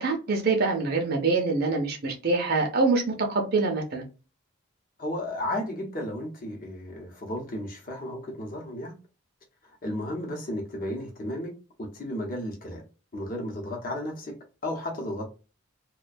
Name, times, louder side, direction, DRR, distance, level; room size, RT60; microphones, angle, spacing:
voice 1, 0.0-4.0, right 3 dB, 45° right, 0.5 m, -25 dB
voice 2, 5.0-8.9 9.8-11.5 11.8-12.8 13.1-14.3 14.6-15.3, left 1 dB, 40° left, 0.8 m, -33 dB
2.3 x 2.2 x 2.5 m
head